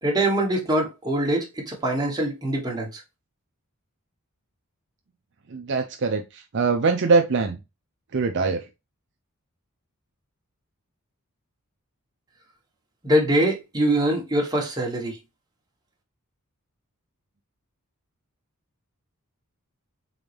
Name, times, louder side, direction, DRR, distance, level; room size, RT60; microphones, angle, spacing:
voice 1, 0.0-3.0 13.0-15.2, right 1 dB, 20° right, 1.4 m, -23 dB
voice 2, 5.5-7.6 8.1-8.7, right 4 dB, 55° right, 0.6 m, -23 dB
3.9 x 3.8 x 3.4 m
head